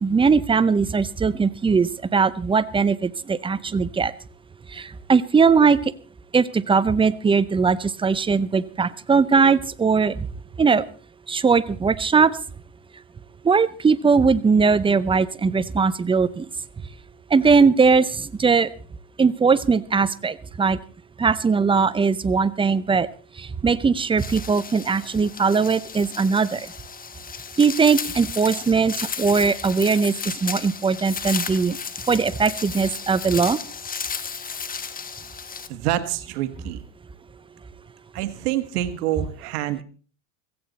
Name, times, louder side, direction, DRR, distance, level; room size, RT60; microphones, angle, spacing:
voice 1, 0.0-4.1 4.7-5.8 6.3-10.3 10.6-10.8 11.3-12.4 13.4-16.5 17.3-18.7 19.2-20.8 21.2-23.1 23.4-26.7 27.6-30.1 30.4-31.8 32.1-33.6, right 5 dB, 10° right, 16 dB, 0.6 m, -20 dB
sound 1, 24.2-35.7, left 6 dB, 20° left, 1.2 m, -34 dB
voice 2, 35.7-36.8 38.1-39.8, right 13 dB, 85° right, 11 dB, 1.7 m, -27 dB
16.5 x 15.0 x 4.1 m, 0.38 s
supercardioid pair, 120°, 45 cm